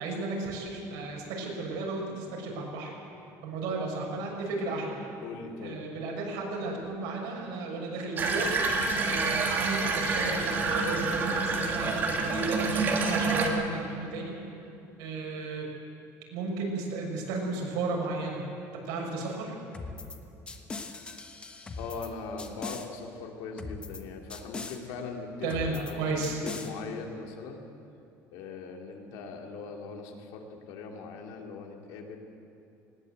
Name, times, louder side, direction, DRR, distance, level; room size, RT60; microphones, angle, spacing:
voice 1, 0.0-2.9 3.4-5.0 5.6-8.5 9.0-14.3 15.0-15.7 16.3-18.5 18.8-19.5 25.4-26.4, right 3 dB, 85° right, -1 dB, 6.1 m, -34 dB
voice 2, 5.2-5.8 21.8-26.1 26.4-27.6 28.3-32.2, left 4 dB, 75° left, 2 dB, 2.9 m, -40 dB
Water tap faucet / Bathtub (filling or washing), 8.2-13.5, right 3 dB, 30° right, 2.0 m, -28 dB
sound 1, 19.7-20.2 20.5-22.1 22.4-22.9 23.6-24.0 24.3-24.8 25.5-25.9 26.2-26.7, left 3 dB, 15° left, 1.2 m, -40 dB
19.5 x 19.0 x 8.0 m, 2.8 s
cardioid pair, 170°, 7 cm